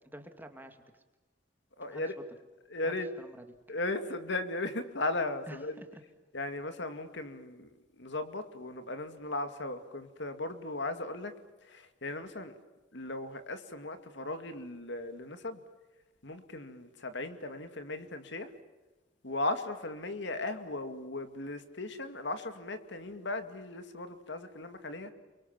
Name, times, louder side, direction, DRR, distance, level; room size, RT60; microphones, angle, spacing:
voice 1, 0.1-1.0 1.9-2.2 2.8-3.5 5.5-6.0, right 1 dB, 10° right, 6 dB, 2.4 m, -49 dB
voice 2, 1.8-2.1 2.7-3.1 3.7-5.8 6.3-7.7 8.0-11.3 11.7-12.6 12.9-15.6 16.2-18.5 19.2-25.1, left 2 dB, 65° left, 9 dB, 2.3 m, -37 dB
30.0 x 23.5 x 7.4 m, 1.2 s
head